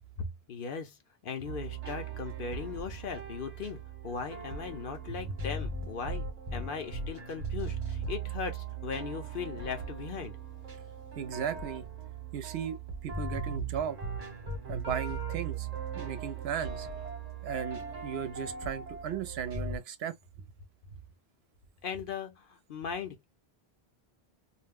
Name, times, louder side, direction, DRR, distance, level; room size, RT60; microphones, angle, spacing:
voice 1, 0.5-1.0 1.2-10.4 21.8-23.2, left 6 dB, 60° left, 0.8 m, -38 dB
sound 1, 1.4-19.8, right 4 dB, 40° right, 1.0 m, -39 dB
voice 2, 11.2-11.9 12.3-12.8 13.0-14.0 14.7-15.7 15.9-16.9 17.4-20.1, right 8 dB, 80° right, 0.8 m, -36 dB
2.5 x 2.0 x 3.4 m
omnidirectional pair, 1.1 m